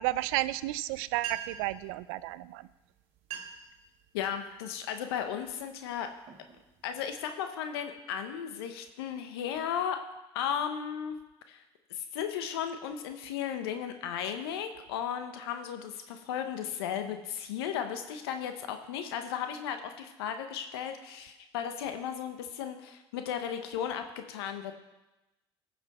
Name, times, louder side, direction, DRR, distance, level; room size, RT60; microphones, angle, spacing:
voice 1, 0.0-2.7, right 17 dB, 80° right, 16 dB, 0.4 m, -32 dB
sound 1, 0.9-1.0 1.1-1.7 2.6-2.8 3.1-3.7 4.2-4.6 5.2-5.4 6.0-7.2, right 9 dB, 55° right, 2.1 m, -42 dB
voice 2, 4.1-6.1 6.8-10.0 10.3-11.2 11.5-11.6 11.9-24.8, left 8 dB, 85° left, 7 dB, 0.8 m, -35 dB
15.0 x 6.0 x 4.2 m, 1.0 s
hypercardioid pair, 80°, 13 cm